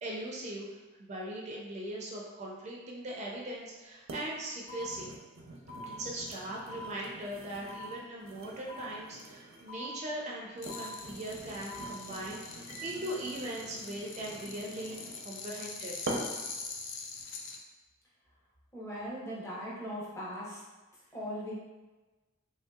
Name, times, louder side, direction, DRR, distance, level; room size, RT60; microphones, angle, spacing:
voice 1, 0.0-0.7 1.0-5.1 5.8-15.0 15.2-16.0, right 1 dB, 35° right, -3 dB, 0.4 m, -40 dB
sound 1, 3.3-3.4 4.1-4.3 4.6-9.8 10.4-15.3 16.1-16.5 17.0-17.3, right 1 dB, 85° right, 0.5 m, -45 dB
sound 2, 4.7-4.8 5.7-5.8 6.7-6.9 7.7-7.9 8.7-8.9 9.7-9.9 10.7-10.8 11.7-11.8 12.7-12.8, left 2 dB, 85° left, 1.2 m, -44 dB
sound 3, 10.6-17.6, left 4 dB, 65° left, 0.4 m, -44 dB
voice 2, 18.7-20.6 21.1-21.5, equal, 15° left, -7 dB, 0.8 m, -39 dB
3.1 x 2.7 x 2.2 m, 1.2 s
head